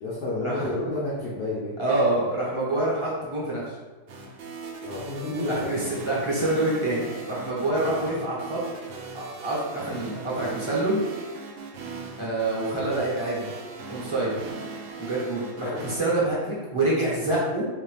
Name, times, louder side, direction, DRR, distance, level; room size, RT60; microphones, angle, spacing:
voice 1, 0.0-1.7 4.8-5.7 15.6-15.8, left 2 dB, 80° left, -7 dB, 1.4 m, -30 dB
voice 2, 1.8-3.6 5.5-8.6 9.1-11.0 12.2-13.4 13.9-14.3 15.0-17.6, right 2 dB, 25° right, -7 dB, 0.8 m, -26 dB
sound 1, 4.1-16.0, right 4 dB, 85° right, 0.5 m, -39 dB
4.1 x 2.9 x 3.2 m, 1.3 s
omnidirectional pair, 1.7 m